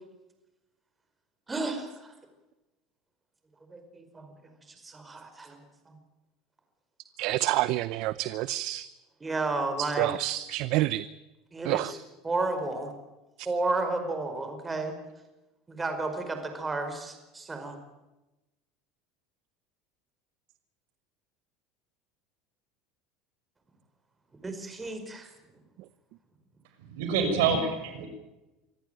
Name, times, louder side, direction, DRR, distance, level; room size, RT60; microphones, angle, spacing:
voice 1, 1.5-2.1 3.7-4.3 4.8-5.6 9.2-10.1 11.5-12.0 12.2-12.9 13.4-14.9 15.7-17.8 24.4-25.3, right 3 dB, 15° right, 6 dB, 5.0 m, -32 dB
voice 2, 7.2-8.9 9.8-11.0 11.6-11.9, right 16 dB, 65° right, 16 dB, 0.7 m, -28 dB
voice 3, 27.0-28.1, right 5 dB, 80° right, 6 dB, 6.1 m, -26 dB
25.5 x 14.5 x 9.1 m, 1.0 s
supercardioid pair, 115°, 0 cm